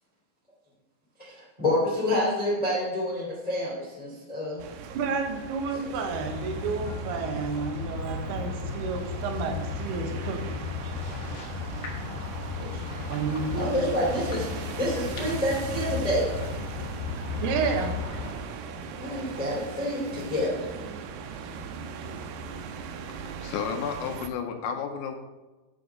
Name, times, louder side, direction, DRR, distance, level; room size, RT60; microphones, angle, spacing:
voice 1, 1.2-4.6 5.8-5.9 12.5-13.0 13.6-16.4 19.0-20.8, left 1 dB, 15° left, -7 dB, 1.7 m, -28 dB
sound 1, 4.6-24.3, right 5 dB, 85° right, 2.2 m, -40 dB
voice 2, 4.9-10.6 13.1-13.8 17.4-18.0, right 5 dB, 70° right, 4 dB, 2.8 m, -31 dB
sound 2, 6.1-18.3, left 5 dB, 60° left, 1.5 m, -35 dB
voice 3, 23.4-25.2, left 7 dB, 80° left, 5 dB, 3.0 m, -32 dB
8.6 x 7.7 x 5.0 m, 1.2 s
omnidirectional pair, 5.4 m